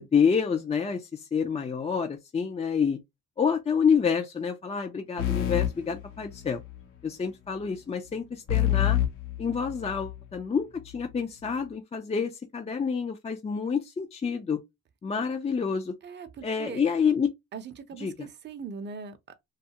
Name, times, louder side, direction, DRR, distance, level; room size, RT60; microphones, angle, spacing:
voice 1, 0.0-3.0 3.4-6.6 7.0-9.0 9.4-14.6 15.0-15.9 16.4-17.3 18.0-18.3, left 6 dB, 20° left, 0.4 m, -28 dB
sound 1, 5.2-6.8 8.5-10.2, left 12 dB, 80° left, 0.8 m, -27 dB
voice 2, 16.0-16.8 17.5-19.4, right 5 dB, 35° right, 0.6 m, -40 dB
2.4 x 2.3 x 2.8 m
cardioid pair, 90°, 30 cm